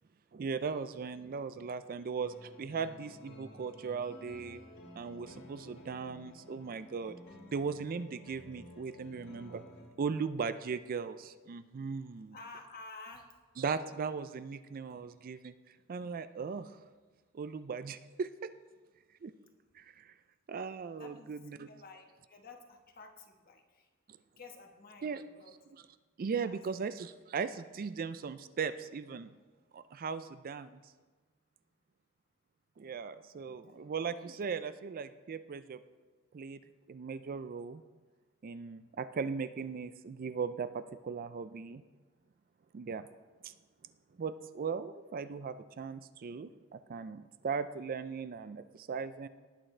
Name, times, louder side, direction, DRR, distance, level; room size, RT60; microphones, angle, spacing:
voice 1, 0.3-4.6 5.0-7.2 7.5-9.6 10.0-12.4 13.6-15.5 15.9-16.8 17.3-18.5 19.2-19.3 19.7-20.1 20.5-21.7 25.0-25.2 26.2-29.3 29.7-30.8 32.8-35.8 36.3-36.6 36.9-37.8 38.4-41.8 42.7-43.1 43.4-43.5 44.2-49.3, right 5 dB, 40° right, 12 dB, 0.4 m, -38 dB
sound 1, 2.2-9.9, equal, 85° left, 3.4 m, -53 dB
voice 2, 12.3-13.3 21.0-23.9 24.4-25.6 26.4-26.8 33.5-34.0, left 3 dB, 45° left, 4 dB, 1.3 m, -52 dB
19.0 x 8.8 x 3.3 m, 1.4 s
head